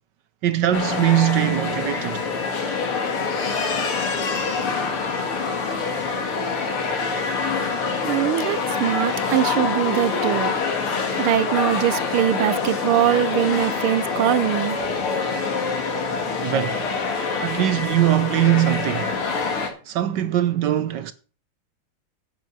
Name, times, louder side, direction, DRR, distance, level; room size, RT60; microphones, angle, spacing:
voice 1, 0.4-2.2 16.4-16.9 17.4-19.1 19.9-21.1, right 12 dB, 70° right, 1.1 m, -21 dB
sound 1, 0.7-19.7, left 4 dB, 90° left, 2.8 m, -25 dB
voice 2, 8.1-10.5 11.2-14.8, right 12 dB, 90° right, 1.6 m, -22 dB
9.0 x 8.6 x 6.3 m
omnidirectional pair, 2.3 m